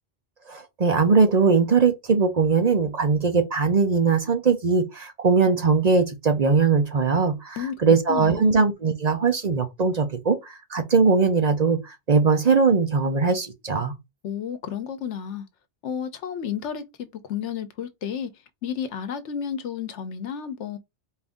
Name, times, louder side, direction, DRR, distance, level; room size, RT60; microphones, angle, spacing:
voice 1, 0.5-13.9, right 4 dB, 45° right, 0.7 m, -20 dB
voice 2, 8.1-8.5 14.2-15.5 15.8-18.3 18.6-20.8, left 8 dB, 85° left, 1.1 m, -31 dB
4.4 x 2.6 x 3.5 m
omnidirectional pair, 1.2 m